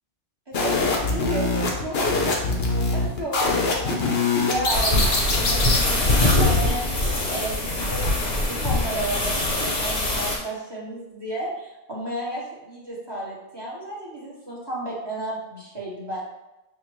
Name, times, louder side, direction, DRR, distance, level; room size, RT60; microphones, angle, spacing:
sound 1, 0.5-5.8, left 3 dB, 70° left, 1.0 m, -23 dB
voice 1, 0.5-2.0 2.6-6.8 7.3-16.2, right 1 dB, 25° right, -6 dB, 1.1 m, -32 dB
sound 2, 4.7-10.4, left 2 dB, 45° left, 0.9 m, -23 dB
5.9 x 2.1 x 3.0 m, 0.97 s
omnidirectional pair, 1.1 m